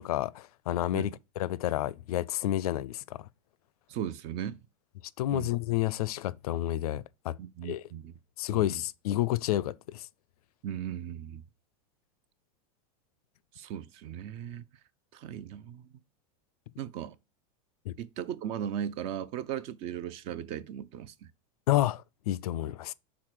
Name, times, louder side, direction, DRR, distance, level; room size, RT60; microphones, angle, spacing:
voice 1, 0.0-3.0 5.2-7.4 7.6-7.8 8.4-10.0 17.9-18.0 21.7-22.9, left 14 dB, 85° left, 0.5 m, -30 dB
voice 2, 3.9-4.6 5.3-5.5 7.4-8.1 8.5-8.6 10.6-11.4 13.6-14.6 15.1-15.9 16.8-17.2 18.0-21.3, right 9 dB, 30° right, 0.4 m, -37 dB
5.9 x 4.1 x 4.8 m
supercardioid pair, 165°, 19 cm